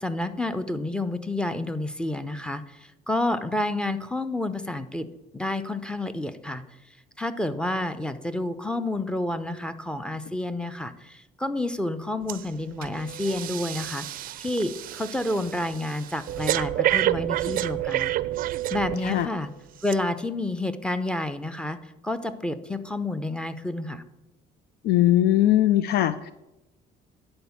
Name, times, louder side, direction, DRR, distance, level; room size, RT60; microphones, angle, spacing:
voice 1, 0.0-5.1 5.3-6.6 7.2-18.1 18.7-19.5 19.8-21.8 22.0-24.0, left 2 dB, 5° left, 11 dB, 0.6 m, -29 dB
Breathing, 12.3-12.5 12.8-19.3 19.8-19.9, right 14 dB, 55° right, 0.4 m, -29 dB
voice 2, 24.8-26.3, left 13 dB, 70° left, 13 dB, 0.4 m, -20 dB
9.9 x 4.3 x 7.0 m, 0.98 s
cardioid pair, 110°, 17 cm